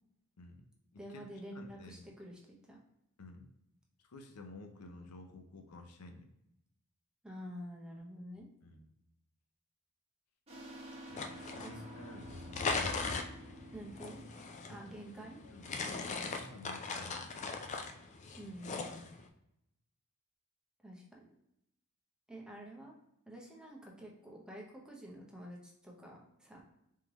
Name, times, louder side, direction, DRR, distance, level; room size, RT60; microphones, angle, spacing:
voice 1, 0.4-0.7 0.9-1.2 1.5-2.1 3.2-3.5 4.0-6.3 8.6-8.9 11.1-12.5 14.6-14.8 15.1-17.6, left 2 dB, 85° left, 5 dB, 0.6 m, -52 dB
voice 2, 1.0-2.8 7.2-8.5 11.6-11.8 13.7-14.2 14.7-15.4 18.4-19.1 20.8-21.3 22.3-22.9 23.3-26.6, equal, 5° right, -2 dB, 0.7 m, -48 dB
sound 1, 10.5-15.8, right 1 dB, 30° right, 1.1 m, -51 dB
sound 2, 11.1-19.3, left 4 dB, 30° left, 0.4 m, -40 dB
3.7 x 3.3 x 2.9 m, 0.82 s
head